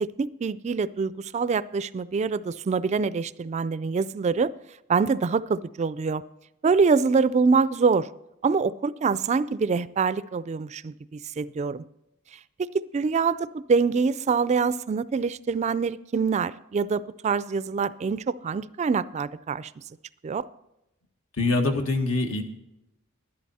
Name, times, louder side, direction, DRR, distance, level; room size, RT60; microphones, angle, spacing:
voice 1, 0.0-4.5 4.9-6.2 6.6-8.1 8.4-11.8 12.6-19.7 20.2-20.5, right 5 dB, 35° right, 17 dB, 0.3 m, -25 dB
voice 2, 21.4-22.4, left 2 dB, 85° left, 4 dB, 1.6 m, -24 dB
12.0 x 11.0 x 4.1 m, 0.87 s
head